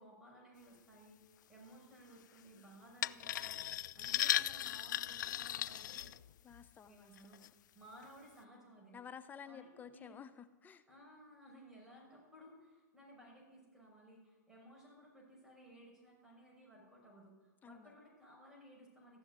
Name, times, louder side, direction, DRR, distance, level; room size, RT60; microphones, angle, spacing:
voice 1, 0.0-6.1 6.8-9.0 9.4-10.2 10.9-19.2, equal, 5° right, -3 dB, 6.3 m, -59 dB
sound 1, 3.0-6.6 7.2-7.5 8.0-8.1, left 11 dB, 75° left, 0.4 m, -37 dB
voice 2, 6.4-7.5 8.9-10.8 17.6-17.9, left 7 dB, 15° left, 12 dB, 0.6 m, -53 dB
15.5 x 7.2 x 9.5 m, 1.2 s
hypercardioid pair, 125°, 10 cm